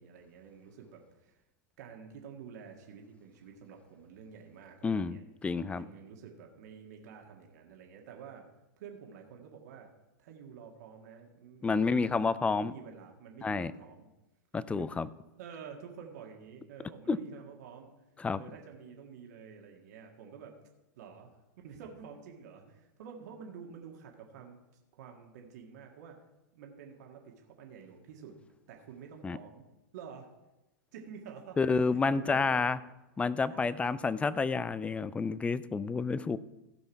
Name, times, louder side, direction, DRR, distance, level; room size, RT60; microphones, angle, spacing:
voice 1, 0.0-1.4 1.8-5.2 5.7-8.5 8.8-9.9 10.2-14.1 14.7-14.9 15.4-17.9 18.3-20.6 21.0-24.6 24.9-26.2 26.5-28.4 28.7-29.7 29.9-30.3 30.9-32.6 33.5-33.9, right 7 dB, 60° right, 1 dB, 1.8 m, -49 dB
voice 2, 4.8-5.8 11.6-12.7 13.4-13.7 14.5-15.1 17.1-17.2 18.2-18.4 29.2-29.4 31.6-32.8 33.2-36.4, left 4 dB, 10° left, 17 dB, 0.4 m, -29 dB
16.0 x 5.5 x 4.6 m, 0.96 s
hypercardioid pair, 105°, 10 cm